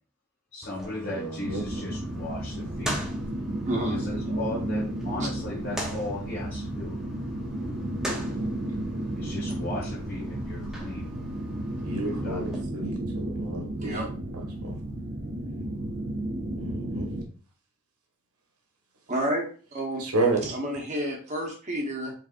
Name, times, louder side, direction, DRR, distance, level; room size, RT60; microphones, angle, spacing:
voice 1, 0.5-2.9 3.9-7.0 9.2-11.1 12.0-12.5, left 2 dB, 45° left, -6 dB, 1.5 m, -37 dB
sound 1, 0.6-12.6, equal, ahead, 0.8 m, -41 dB
voice 2, 1.0-1.7 8.4-8.5 11.8-13.9 14.6-14.7 16.6-17.1 20.0-20.5, right 2 dB, 85° right, 2 dB, 1.4 m, -31 dB
sound 2, 1.4-17.2, right 1 dB, 55° right, 0.8 m, -33 dB
voice 3, 3.6-4.0 5.2-5.3 13.8-14.1 19.1-19.5 19.7-20.0 20.5-22.1, right 1 dB, 30° right, 0 dB, 1.0 m, -30 dB
5.1 x 4.0 x 2.5 m, 0.39 s
head